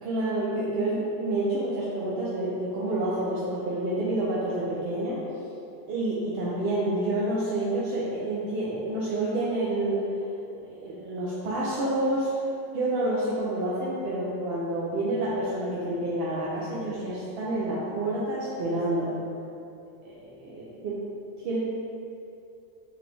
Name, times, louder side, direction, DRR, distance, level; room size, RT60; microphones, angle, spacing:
voice 1, 0.0-5.2 5.9-10.1 10.6-12.4 12.7-19.1 20.0-21.0 21.4-21.6, right 1 dB, 60° right, -7 dB, 0.7 m, -28 dB
4.0 x 3.1 x 3.3 m, 2.7 s
omnidirectional pair, 1.4 m